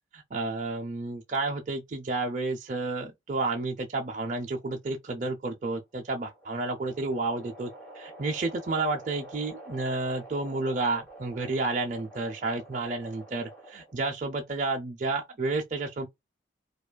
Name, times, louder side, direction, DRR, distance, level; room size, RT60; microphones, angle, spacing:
voice 1, 0.1-16.1, right 3 dB, 40° right, 0.5 m, -31 dB
sound 1, 5.8-14.1, right 1 dB, 10° left, 1.8 m, -48 dB
4.8 x 2.3 x 2.2 m
head